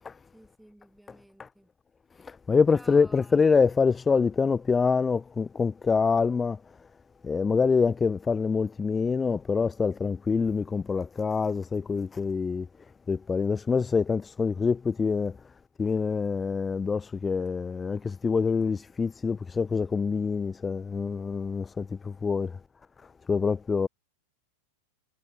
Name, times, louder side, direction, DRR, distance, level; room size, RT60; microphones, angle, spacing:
voice 1, 0.3-1.7 2.7-3.6, right 1 dB, ahead, 4.9 m, -53 dB
voice 2, 2.2-6.6 7.2-12.7 13.1-15.4 15.8-22.6 23.3-23.9, left 5 dB, 15° left, 0.7 m, -25 dB
figure-of-eight pair, 90°, 0 cm